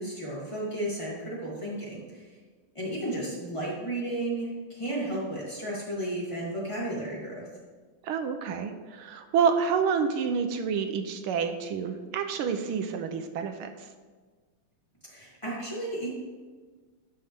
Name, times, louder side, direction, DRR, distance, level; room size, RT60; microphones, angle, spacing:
voice 1, 0.0-2.3 2.7-7.5 15.1-16.1, right 1 dB, 15° left, -7 dB, 2.9 m, -33 dB
voice 2, 8.0-13.7, right 6 dB, 80° right, 7 dB, 1.6 m, -28 dB
16.0 x 5.8 x 3.4 m, 1.4 s
omnidirectional pair, 2.4 m